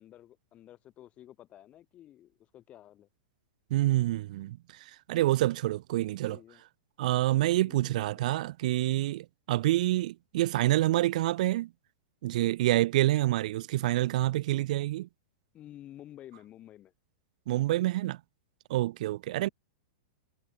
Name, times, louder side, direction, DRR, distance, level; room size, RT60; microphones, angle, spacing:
voice 1, 0.0-3.1 6.2-6.6 7.5-8.4 15.5-16.9 19.3-19.5, left 12 dB, 30° left, 7.1 m, -52 dB
voice 2, 3.7-4.6 5.1-6.4 7.0-11.7 12.2-15.1 17.5-18.2 18.7-19.5, right 16 dB, 60° right, 0.5 m, -27 dB
hypercardioid pair, 135°, 5 cm